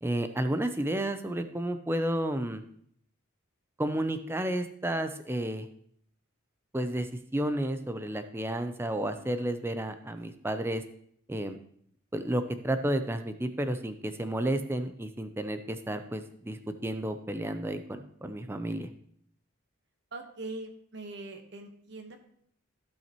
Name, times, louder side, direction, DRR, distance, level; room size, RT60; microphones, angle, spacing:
voice 1, 0.0-2.6 3.8-5.7 6.7-10.8 11.3-11.6 12.1-18.9, right 1 dB, 10° right, 8 dB, 0.5 m, -31 dB
voice 2, 20.1-22.2, right 2 dB, 55° right, 5 dB, 1.2 m, -42 dB
15.5 x 5.6 x 3.0 m, 0.66 s
head